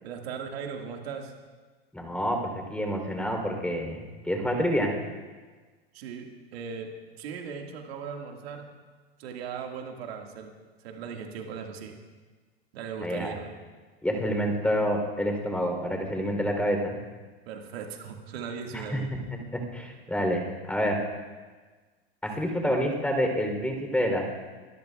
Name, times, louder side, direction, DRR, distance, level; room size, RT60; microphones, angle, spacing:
voice 1, 0.0-1.3 5.9-6.3 6.5-6.9 7.2-8.7 9.2-10.5 10.8-12.0 12.7-13.5 17.5-19.1, right 6 dB, 70° right, 2 dB, 1.9 m, -38 dB
voice 2, 1.9-2.4 2.7-4.9 13.0-13.3 14.0-17.0 18.7-19.0 19.7-21.0 22.2-24.2, equal, 5° left, 2 dB, 3.3 m, -28 dB
24.5 x 13.0 x 2.4 m, 1.4 s
hypercardioid pair, 105°, 32 cm